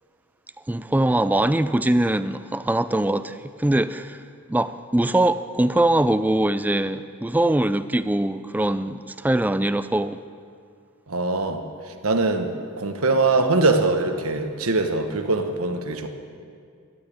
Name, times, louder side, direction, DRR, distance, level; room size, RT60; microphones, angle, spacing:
voice 1, 0.7-4.2 4.5-10.2, right 1 dB, 10° right, 0.3 m, -22 dB
voice 2, 11.1-11.6 12.0-16.1, right 3 dB, 80° right, 1.2 m, -22 dB
13.0 x 11.5 x 8.6 m
head